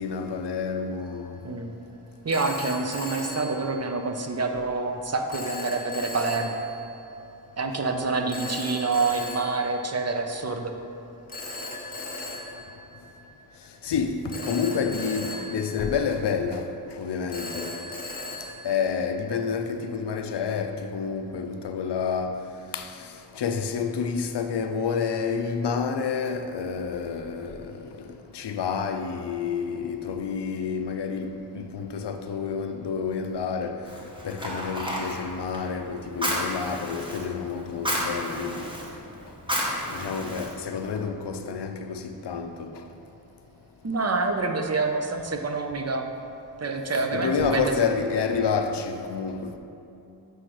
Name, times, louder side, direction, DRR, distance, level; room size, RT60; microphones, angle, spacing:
voice 1, 0.0-1.4 13.8-16.7 17.0-17.7 18.6-22.4 22.7-23.1 23.4-33.8 34.2-38.7 39.9-42.8 47.1-49.6, left 6 dB, 80° left, 0.5 m, -29 dB
Telephone, 1.0-1.4 2.3-4.3 5.3-7.0 8.3-10.5 11.3-13.6 14.3-16.6 17.3-19.5, left 1 dB, 20° left, 0.8 m, -38 dB
voice 2, 2.2-6.6 7.6-10.7 43.8-46.1 46.6-47.7, right 3 dB, 40° right, 0.5 m, -27 dB
Fire, 33.8-41.0, equal, 10° right, 1.1 m, -32 dB
8.0 x 4.8 x 3.0 m
wide cardioid pair, 50°, 41 cm